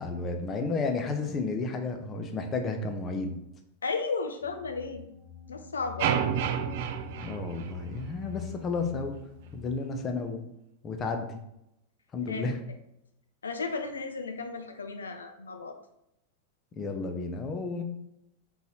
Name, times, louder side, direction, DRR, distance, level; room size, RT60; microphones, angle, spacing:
voice 1, 0.0-3.3 7.2-9.1 9.5-10.5 10.8-11.4 12.1-12.6 16.8-17.8, left 3 dB, 25° left, 5 dB, 0.7 m, -32 dB
voice 2, 3.8-5.0 5.5-6.2 12.3-12.5 13.4-15.8, left 4 dB, 70° left, 6 dB, 0.5 m, -34 dB
sound 1, 4.4-9.8, left 9 dB, 15° right, 1.0 m, -46 dB
sound 2, 6.0-8.3, right 8 dB, 50° right, 0.4 m, -30 dB
4.0 x 3.9 x 2.9 m, 0.80 s
figure-of-eight pair, 90°, 0 cm